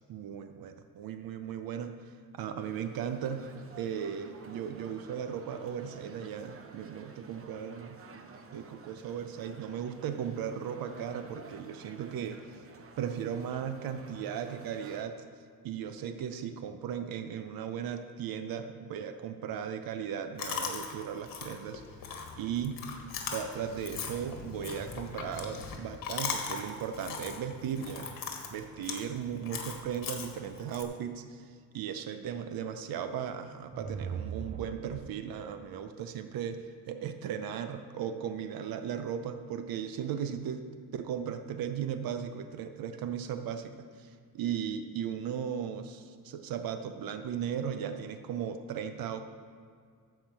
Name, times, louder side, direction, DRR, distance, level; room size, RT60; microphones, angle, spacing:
voice 1, 0.1-3.5 3.8-8.0 8.5-12.4 13.0-15.2 15.6-21.8 22.4-22.9 23.3-28.2 28.5-40.6 40.9-49.2, right 8 dB, 85° right, 8 dB, 0.7 m, -37 dB
sound 1, 2.6-15.0, right 4 dB, 40° right, 0.9 m, -52 dB
Chewing mastication, 20.4-30.8, left 5 dB, 70° left, 1.6 m, -40 dB
sound 2, 33.5-35.5, right 6 dB, 25° right, 0.3 m, -40 dB
13.0 x 5.0 x 7.5 m, 2.1 s
cardioid pair, 145°, 34 cm